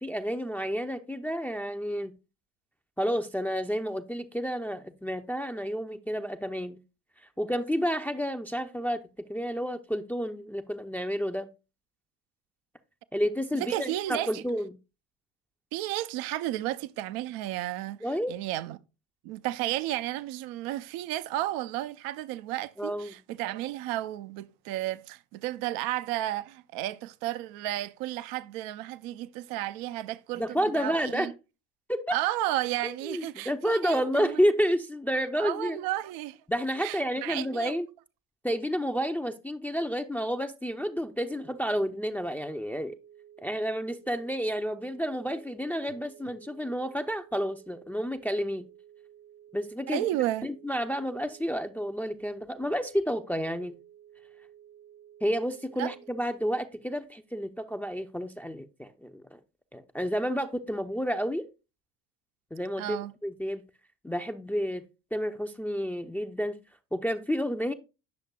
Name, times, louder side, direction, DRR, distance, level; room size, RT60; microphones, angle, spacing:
voice 1, 0.0-2.1 3.0-6.8 7.4-9.0 9.3-11.5 13.1-14.7 18.0-18.3 22.8-23.1 30.4-31.3 31.9-32.1 33.1-35.8 36.5-37.9 38.4-43.0 43.4-48.7 49.5-50.0 50.4-53.8 55.2-59.4 59.7-61.5 62.5-63.6 64.0-64.8 65.1-66.6 66.9-67.7, equal, 5° left, 0.5 m, -30 dB
voice 2, 13.6-14.4 15.7-18.8 19.2-31.3 32.1-34.4 35.1-36.4 36.8-37.8 49.9-50.5 55.8-55.9 62.8-63.1, right 15 dB, 60° right, 0.5 m, -33 dB
sound 1, 41.2-56.2, right 10 dB, 90° right, 0.9 m, -54 dB
9.4 x 6.4 x 2.3 m
hypercardioid pair, 55°, 40 cm